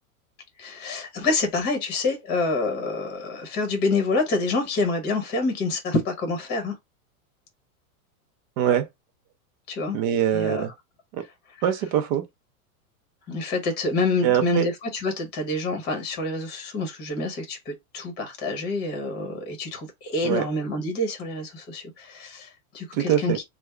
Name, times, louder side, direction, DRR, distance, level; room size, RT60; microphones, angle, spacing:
voice 1, 0.6-6.8 9.7-10.0 10.3-10.7 13.3-23.4, left 2 dB, 25° left, 1.0 m, -27 dB
voice 2, 8.6-8.9 9.9-10.7 11.1-11.2 11.6-12.2 14.2-14.7 20.2-20.5 22.9-23.4, right 10 dB, 35° right, 0.6 m, -23 dB
3.4 x 2.2 x 3.3 m
supercardioid pair, 160°, 44 cm